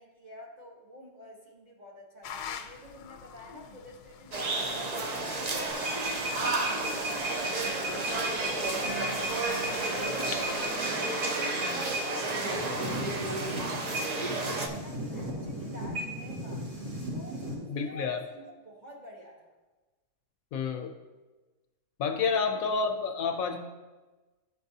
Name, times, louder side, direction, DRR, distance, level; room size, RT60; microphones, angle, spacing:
voice 1, 0.0-5.8 6.3-13.1 13.5-16.7 17.1-19.5 22.0-22.3, left 1 dB, 35° right, -3 dB, 1.0 m, -49 dB
sound 1, 2.2-10.7, left 8 dB, 90° left, 1.1 m, -46 dB
sound 2, 4.3-14.7, right 2 dB, 85° right, 0.3 m, -32 dB
sound 3, 5.7-17.6, right 1 dB, 70° right, 2.6 m, -37 dB
voice 2, 17.7-18.2 20.5-20.9 22.0-23.6, left 5 dB, 70° left, 5 dB, 1.0 m, -29 dB
12.0 x 4.6 x 2.7 m, 1.2 s
omnidirectional pair, 1.7 m